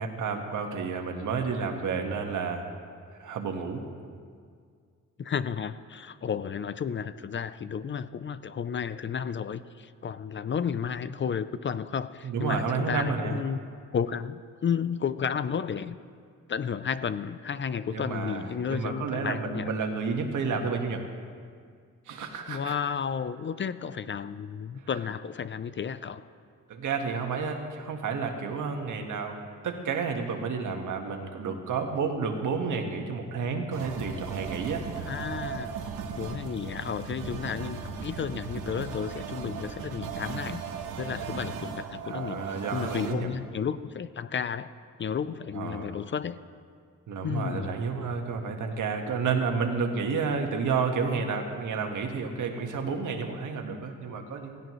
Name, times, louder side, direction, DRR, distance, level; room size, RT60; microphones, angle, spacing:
voice 1, 0.0-2.7 3.2-3.8 12.2-13.4 17.9-21.1 22.1-22.7 26.7-29.4 29.6-34.8 42.0-43.3 45.5-45.9 47.1-54.6, right 5 dB, 70° right, 4 dB, 1.6 m, -30 dB
voice 2, 5.2-13.6 13.9-16.0 16.5-19.7 22.5-26.2 35.1-35.7 36.1-40.6 41.0-44.7 45.0-46.4 47.2-47.7, left 7 dB, 40° left, 14 dB, 0.5 m, -32 dB
sound 1, 33.7-43.1, right 6 dB, 85° right, 1.2 m, -37 dB
16.5 x 16.5 x 3.2 m, 2.1 s
cardioid pair, 95°, 31 cm